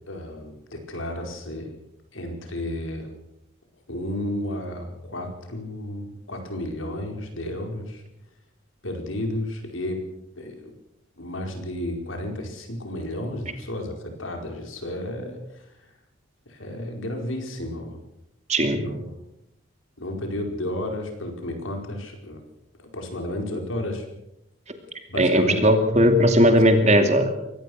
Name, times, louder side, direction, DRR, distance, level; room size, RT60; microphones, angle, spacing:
voice 1, 0.1-1.7 2.1-3.1 3.9-8.0 8.8-10.0 10.3-10.7 11.2-15.9 16.5-18.0 18.6-19.0 20.0-22.4 22.8-24.0 25.1-25.7 26.5-26.6, left 1 dB, 80° left, 3 dB, 4.7 m, -32 dB
voice 2, 18.5-18.8 25.2-27.3, equal, 35° right, 6 dB, 2.6 m, -18 dB
24.0 x 18.0 x 6.4 m, 0.85 s
head